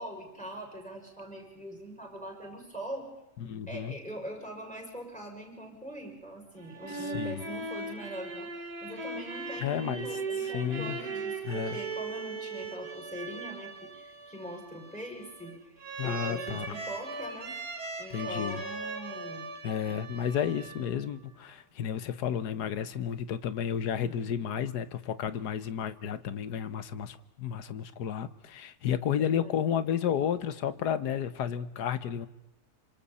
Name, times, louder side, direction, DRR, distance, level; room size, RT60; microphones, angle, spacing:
voice 1, 0.0-3.1 3.7-15.6 16.0-17.6 18.0-19.5 29.2-29.6, right 1 dB, 5° left, 0 dB, 6.7 m, -42 dB
voice 2, 3.4-4.0 6.9-7.4 9.6-10.1 10.4-11.0 11.4-11.8 16.0-16.8 18.1-18.6 19.6-32.3, left 8 dB, 90° left, 13 dB, 1.6 m, -32 dB
sound 1, 6.6-21.2, right 3 dB, 85° right, 2.8 m, -39 dB
28.0 x 26.0 x 4.2 m, 0.96 s
omnidirectional pair, 1.7 m